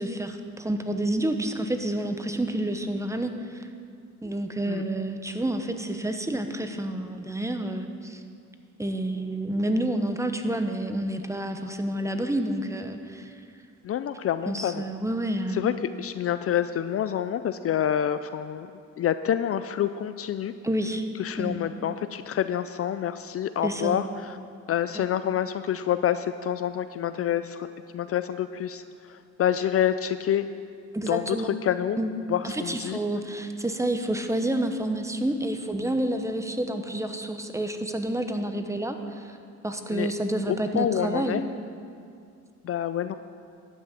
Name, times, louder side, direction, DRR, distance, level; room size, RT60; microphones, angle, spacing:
voice 1, 0.0-3.7 4.2-8.2 8.8-13.3 14.5-15.6 20.6-21.0 21.4-21.6 23.6-24.0 24.9-25.1 30.9-31.6 32.0-32.1 32.4-39.4 39.6-41.4, right 1 dB, 10° right, 6 dB, 0.9 m, -29 dB
voice 2, 13.8-14.8 15.5-15.7 16.0-18.7 19.0-20.5 21.2-24.4 24.7-27.7 27.9-28.8 29.1-30.5 31.1-32.0 32.3-33.0 39.9-40.1 40.5-41.4 42.6-43.2, left 10 dB, 50° left, 11 dB, 0.4 m, -27 dB
12.0 x 6.3 x 8.4 m, 2.3 s
cardioid pair, 90°, 30 cm